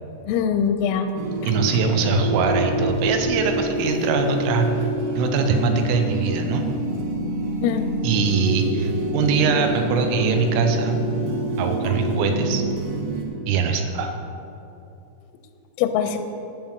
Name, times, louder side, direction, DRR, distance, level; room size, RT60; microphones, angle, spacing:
voice 1, 0.3-1.1 1.4-1.5 7.6-7.9 15.8-16.2, left 8 dB, 85° left, 8 dB, 3.3 m, -22 dB
sound 1, 1.1-13.2, right 1 dB, 70° right, 2.2 m, -26 dB
voice 2, 1.5-4.7 5.2-6.6 8.0-11.0 11.6-12.6 13.5-14.1, right 5 dB, 90° right, 5 dB, 3.3 m, -22 dB
11.5 x 5.6 x 7.8 m, 2.8 s
omnidirectional pair, 5.9 m